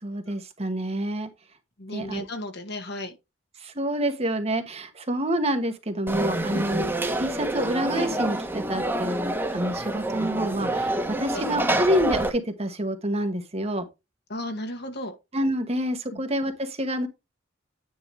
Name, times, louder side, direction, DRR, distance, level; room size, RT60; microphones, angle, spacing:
voice 1, 0.0-1.3 1.9-2.2 3.6-6.9 7.2-13.9 15.3-17.1, equal, 30° right, 1.4 m, -27 dB
voice 2, 1.8-3.2 6.5-6.6 11.3-11.4 14.3-15.1 16.1-16.2, left 1 dB, 55° left, 2.0 m, -34 dB
Conversation / Crowd, 6.1-12.3, right 1 dB, 10° right, 1.3 m, -27 dB
9.8 x 4.7 x 3.6 m
head